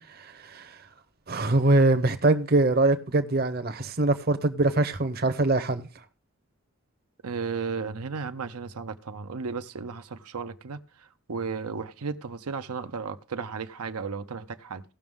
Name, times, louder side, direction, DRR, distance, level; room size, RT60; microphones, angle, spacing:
voice 1, 0.2-0.7 1.3-5.9, right 2 dB, 45° right, 0.8 m, -23 dB
voice 2, 7.2-14.8, right 5 dB, 90° right, 0.7 m, -34 dB
17.0 x 6.0 x 3.6 m
head